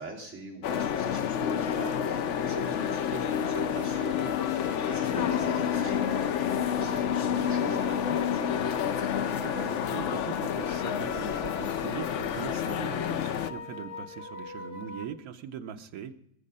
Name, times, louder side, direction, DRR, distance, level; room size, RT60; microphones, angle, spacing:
voice 1, 0.0-8.5, right 2 dB, 55° right, -4 dB, 3.6 m, -42 dB
sound 1, 0.6-13.5, left 8 dB, 60° left, 0.9 m, -29 dB
sound 2, 1.3-15.0, left 3 dB, 45° left, 1.3 m, -44 dB
voice 2, 9.4-16.1, right 8 dB, 85° right, 7 dB, 1.3 m, -40 dB
21.5 x 7.5 x 5.5 m, 0.80 s
omnidirectional pair, 1.5 m